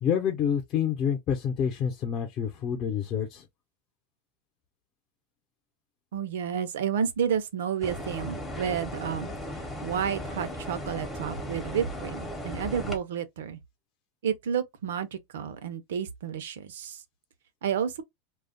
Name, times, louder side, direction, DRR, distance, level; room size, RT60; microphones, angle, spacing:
voice 1, 0.0-3.4, left 8 dB, 35° left, 0.7 m, -28 dB
voice 2, 6.1-9.3 9.8-13.6 14.2-17.0 17.6-18.0, right 8 dB, 90° right, 0.6 m, -30 dB
sound 1, 7.8-13.0, left 1 dB, 5° left, 0.8 m, -36 dB
2.3 x 2.1 x 3.7 m
supercardioid pair, 145°, 0 cm